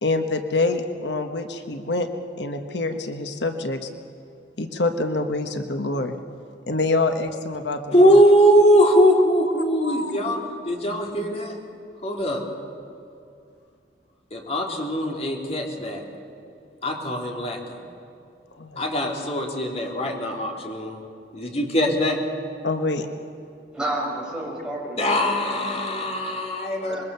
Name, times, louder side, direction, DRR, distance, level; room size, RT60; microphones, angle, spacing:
voice 1, 0.0-2.1 2.4-3.9 4.6-6.2 6.7-8.2 9.8-10.1 10.9-11.0 18.6-18.8 22.6-23.1, left 2 dB, 70° left, 6 dB, 1.3 m, -26 dB
voice 2, 7.9-11.6 12.0-12.4 14.3-16.0 16.8-17.8 18.8-21.0 21.3-22.2 25.0-27.0, equal, 35° left, 1 dB, 3.0 m, -21 dB
voice 3, 23.7-25.6 26.7-27.0, right 1 dB, 5° right, -4 dB, 6.0 m, -31 dB
25.5 x 22.0 x 6.9 m, 2.5 s
head